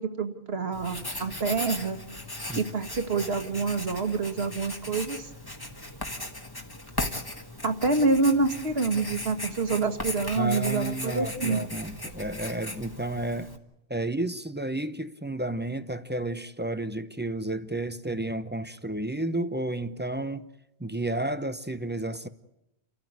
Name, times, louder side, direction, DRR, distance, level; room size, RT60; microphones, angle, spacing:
voice 1, 0.0-2.0 2.6-5.3 7.6-11.6, right 3 dB, 65° right, 1.9 m, -27 dB
Writing, 0.7-13.6, left 1 dB, 20° left, 1.6 m, -37 dB
voice 2, 10.4-13.5 13.9-20.5 20.8-22.3, right 1 dB, 10° right, 0.7 m, -31 dB
30.0 x 13.5 x 9.4 m
omnidirectional pair, 1.1 m